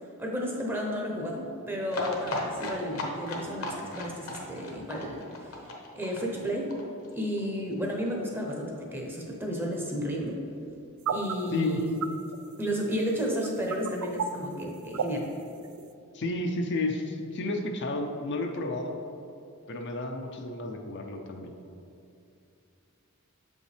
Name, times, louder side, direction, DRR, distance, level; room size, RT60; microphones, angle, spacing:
voice 1, 0.2-5.6 5.9-6.8 7.1-10.4 11.1-12.0 12.6-15.3, equal, 10° right, -1 dB, 0.7 m, -32 dB
sound 1, 1.9-7.5 7.7-7.8 8.1-8.2 8.4-8.5, left 1 dB, 70° left, 1.0 m, -36 dB
sound 2, 11.1-11.4 11.6-11.7 11.9-12.1 12.3-12.4 13.3-14.2 14.7-15.0 15.4-15.8, right 7 dB, 75° right, 0.4 m, -30 dB
voice 2, 16.1-18.9 19.7-21.5, left 2 dB, 50° left, 3 dB, 0.5 m, -31 dB
7.1 x 5.3 x 3.3 m, 2.6 s
head